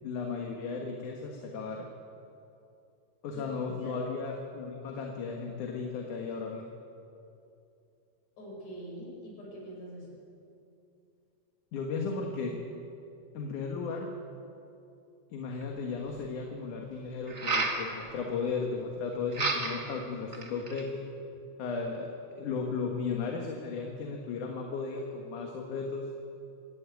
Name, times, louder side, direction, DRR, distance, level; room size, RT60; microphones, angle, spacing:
voice 1, 0.0-1.9 3.2-6.6 11.7-12.6 13.3-14.1 15.3-20.9 21.6-22.1 22.4-26.1, left 4 dB, 75° left, 1 dB, 3.0 m, -35 dB
voice 2, 3.3-4.0 8.4-10.2, equal, 55° left, -3 dB, 6.6 m, -44 dB
sound 1, 15.6-15.7 17.3-17.8 19.3-19.9 20.3-20.9, right 3 dB, 25° right, 1.8 m, -30 dB
26.5 x 12.0 x 9.2 m, 2.6 s
omnidirectional pair, 3.6 m